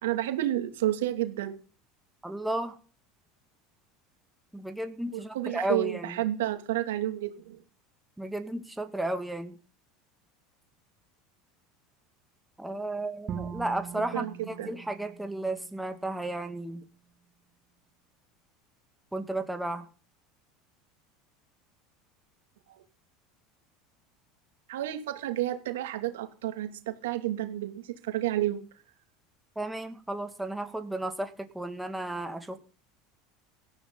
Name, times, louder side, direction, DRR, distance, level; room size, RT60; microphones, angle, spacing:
voice 1, 0.0-1.5 5.1-7.6 14.1-14.7 22.7-22.8 24.7-28.6, right 14 dB, 90° right, 7 dB, 2.6 m, -31 dB
voice 2, 2.2-2.8 4.5-6.2 8.2-9.5 12.6-16.8 19.1-19.9 29.6-32.6, right 1 dB, 5° right, 7 dB, 2.1 m, -33 dB
Bowed string instrument, 13.3-16.4, right 7 dB, 40° right, 2.1 m, -41 dB
18.0 x 13.0 x 4.0 m, 0.38 s
supercardioid pair, 110°, 0 cm